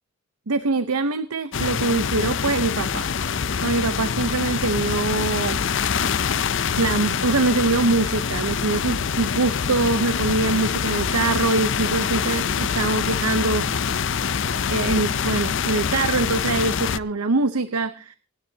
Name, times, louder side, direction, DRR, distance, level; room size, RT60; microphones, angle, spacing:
voice 1, 0.5-3.1 3.6-5.6 6.8-13.7 14.7-18.2, right 3 dB, 85° right, 12 dB, 0.8 m, -23 dB
sound 1, 1.5-17.0, left 6 dB, 55° left, 0.5 m, -25 dB
27.5 x 10.0 x 2.8 m, 0.36 s
head